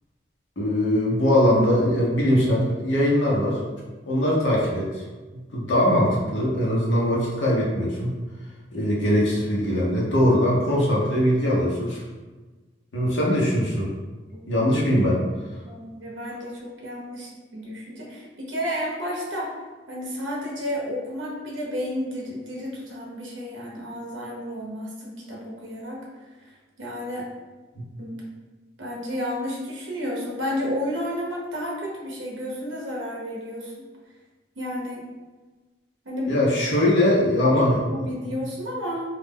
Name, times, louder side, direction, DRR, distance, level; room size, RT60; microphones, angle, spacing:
voice 1, 0.6-3.6 4.1-5.0 5.3-8.1 8.7-12.0 12.9-13.9 14.5-15.2 27.7-27.8 36.3-38.1, left 1 dB, 80° left, -5 dB, 0.8 m, -21 dB
voice 2, 15.7-19.5 19.9-26.1 26.8-27.3 28.0-28.2 28.8-33.7 34.6-35.0 36.0-36.3 37.4-39.0, equal, 85° right, -3 dB, 0.6 m, -31 dB
2.4 x 2.0 x 3.5 m, 1.3 s
head